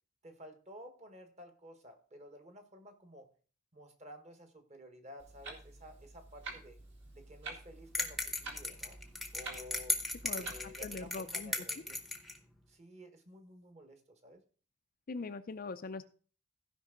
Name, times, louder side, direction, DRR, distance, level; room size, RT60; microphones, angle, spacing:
voice 1, 0.2-3.3 3.7-6.8 7.1-9.0 9.3-10.0 10.3-12.0 12.7-14.4, equal, 30° right, 6 dB, 1.2 m, -53 dB
Clock, 5.2-11.1, right 3 dB, 55° right, 2.0 m, -49 dB
sound 1, 7.9-12.4, left 2 dB, ahead, 0.8 m, -37 dB
voice 2, 10.8-11.5 15.1-16.1, left 3 dB, 40° left, 9 dB, 0.4 m, -41 dB
15.5 x 5.3 x 3.8 m, 0.41 s
head